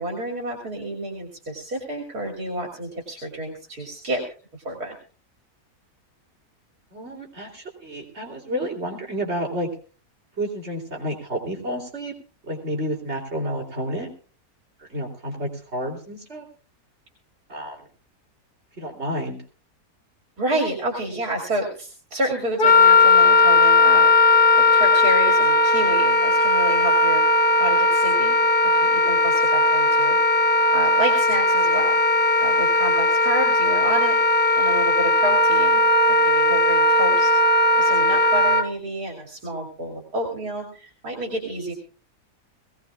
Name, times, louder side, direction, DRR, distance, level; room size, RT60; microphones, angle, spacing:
voice 1, 0.0-4.2 4.5-4.9 20.4-24.4 24.7-28.4 28.7-30.2 30.7-32.0 32.4-34.2 34.6-35.8 36.2-41.7, right 1 dB, 75° right, 1 dB, 3.3 m, -29 dB
voice 2, 6.9-9.7 10.4-12.1 12.4-14.1 14.8-16.5 17.5-17.8 18.8-19.4, equal, 45° right, 0 dB, 3.3 m, -30 dB
Wind instrument woodwind instrument, 22.6-38.7, left 2 dB, 85° left, 2.5 m, -17 dB
21.0 x 17.5 x 2.3 m, 0.38 s
omnidirectional pair, 1.6 m